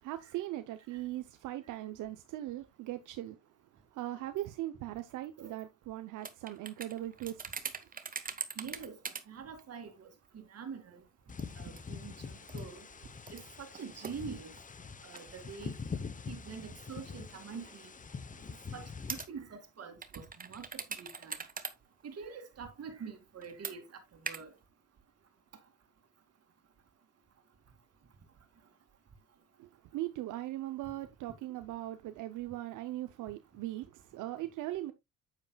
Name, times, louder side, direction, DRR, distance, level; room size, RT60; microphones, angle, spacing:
voice 1, 0.0-3.4 3.9-7.7 29.6-34.9, right 15 dB, 85° right, 0.7 m, -39 dB
sound 1, 6.2-9.2 9.6-9.7 10.2-10.3 11.4-12.0 12.5-12.6 13.2-15.3 15.6-15.7 16.5-16.7 17.7-17.8 19.1-19.3 20.0-21.7 22.0-22.1 23.4-23.7 24.3-24.4, right 5 dB, 30° right, 1.2 m, -41 dB
voice 2, 8.6-9.0 9.3-10.1 10.3-11.0 11.6-12.8 13.3-14.5 15.0-15.7 16.3-17.9 18.7-20.7 21.0-21.4 22.0-23.8 24.2-24.5, right 6 dB, 55° right, 2.4 m, -45 dB
sound 2, 11.3-19.2, left 5 dB, 25° left, 0.8 m, -44 dB
8.9 x 8.2 x 2.3 m
cardioid pair, 90°, 30 cm